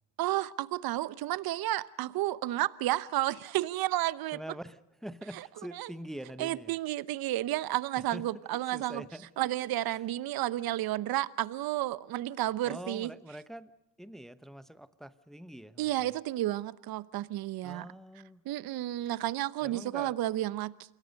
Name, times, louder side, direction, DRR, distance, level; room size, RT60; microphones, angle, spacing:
voice 1, 0.2-4.4 5.7-5.9 6.4-9.0 9.4-13.1 15.8-17.9 18.4-20.7, right 15 dB, 45° right, 1.0 m, -31 dB
voice 2, 4.3-6.7 8.1-8.2 8.7-9.5 9.9-10.0 12.6-13.7 14.0-16.1 17.6-18.4 19.6-20.2, right 1 dB, ahead, 0.8 m, -44 dB
28.0 x 22.0 x 5.3 m
supercardioid pair, 90°, 50 cm